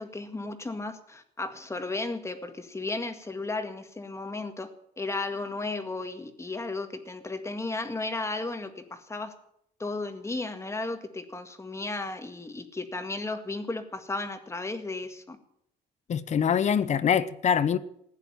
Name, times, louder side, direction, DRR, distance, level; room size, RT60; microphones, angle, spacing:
voice 1, 0.0-4.7 5.0-9.3 9.8-15.4, left 3 dB, 15° left, 1.9 m, -34 dB
voice 2, 16.1-17.8, left 8 dB, 45° left, 0.9 m, -24 dB
15.5 x 9.8 x 9.1 m
cardioid pair, 110°, 17 cm